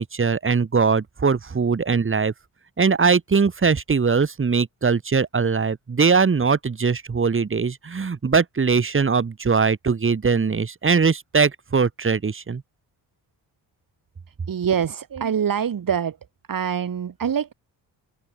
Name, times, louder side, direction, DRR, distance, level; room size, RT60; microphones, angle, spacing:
voice 1, 0.0-2.3 2.8-12.6, right 5 dB, 30° right, 3.1 m, -21 dB
voice 2, 14.5-16.2 16.5-17.5, right 8 dB, 50° right, 6.8 m, -24 dB
open air
wide cardioid pair, 145°, 42 cm